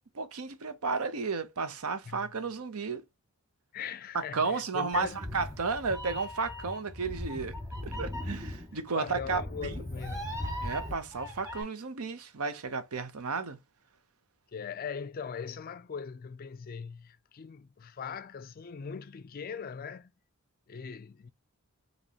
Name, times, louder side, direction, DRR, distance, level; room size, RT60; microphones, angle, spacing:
voice 1, 0.1-3.0 4.1-7.5 7.8-9.8 10.6-13.6, right 4 dB, 80° right, 0.7 m, -33 dB
voice 2, 3.7-5.2 8.9-10.5 14.5-20.1 20.7-21.3, left 6 dB, 40° left, 0.4 m, -40 dB
Meow, 4.9-11.6, left 1 dB, 15° right, 1.7 m, -39 dB
5.2 x 3.0 x 2.9 m
head